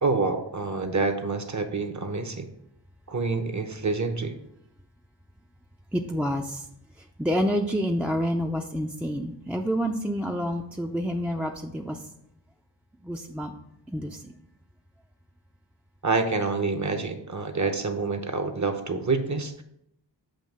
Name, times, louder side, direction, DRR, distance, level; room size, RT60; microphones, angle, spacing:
voice 1, 0.0-2.5 3.1-4.4 16.0-19.6, right 3 dB, 40° right, 7 dB, 0.8 m, -27 dB
voice 2, 5.9-6.4 7.2-12.0 13.1-13.5 13.9-14.2, equal, 5° right, 2 dB, 0.4 m, -28 dB
7.5 x 2.8 x 5.3 m, 0.78 s
wide cardioid pair, 45°, 44 cm